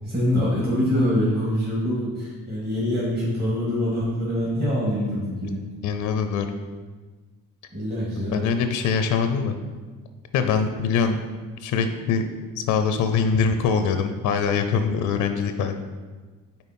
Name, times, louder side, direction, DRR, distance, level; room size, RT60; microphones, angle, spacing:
voice 1, 0.0-5.7 7.7-8.4, equal, 30° right, -7 dB, 1.8 m, -24 dB
voice 2, 5.8-6.5 8.3-9.5 10.3-11.2 11.6-12.2 12.6-15.8, left 6 dB, 90° left, 8 dB, 0.5 m, -23 dB
5.3 x 4.3 x 4.3 m, 1.4 s
cardioid pair, 90°, 30 cm